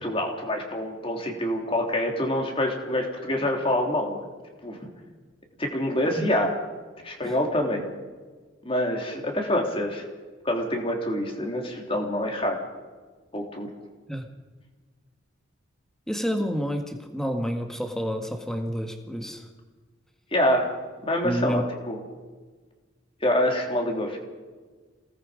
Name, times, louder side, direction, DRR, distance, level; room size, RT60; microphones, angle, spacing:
voice 1, 0.0-4.2 4.6-4.8 5.6-6.5 7.0-7.9 8.6-10.0 10.4-12.6 13.3-13.7 20.3-20.7 21.0-22.0 23.2-24.2, left 1 dB, 25° left, 2 dB, 3.4 m, -26 dB
voice 2, 16.1-19.5 21.2-21.6, equal, ahead, 4 dB, 1.8 m, -29 dB
28.0 x 19.0 x 5.2 m, 1.4 s
head